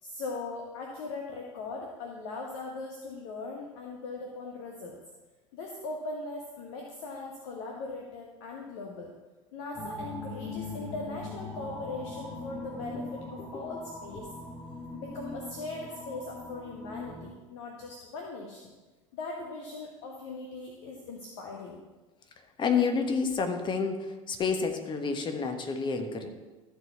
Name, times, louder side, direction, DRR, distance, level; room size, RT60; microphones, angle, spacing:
voice 1, 0.0-5.0 5.5-9.1 9.5-14.3 14.9-18.7 19.1-21.8, left 3 dB, 55° left, 0 dB, 1.3 m, -40 dB
sound 1, 9.7-17.3, left 2 dB, 10° left, 2.2 m, -41 dB
voice 2, 22.6-26.3, left 5 dB, 30° left, 6 dB, 1.3 m, -29 dB
13.5 x 4.8 x 5.8 m, 1.2 s
figure-of-eight pair, 75°, 17 cm